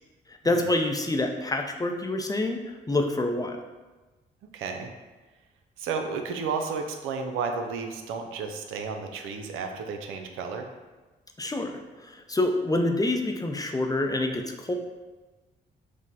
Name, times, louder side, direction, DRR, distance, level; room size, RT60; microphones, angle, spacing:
voice 1, 0.3-3.6 11.4-14.7, left 2 dB, 20° left, 4 dB, 0.5 m, -27 dB
voice 2, 4.5-4.9 5.8-10.7, right 5 dB, 80° right, 4 dB, 0.5 m, -32 dB
5.1 x 2.0 x 4.1 m, 1.2 s
supercardioid pair, 50°, 21 cm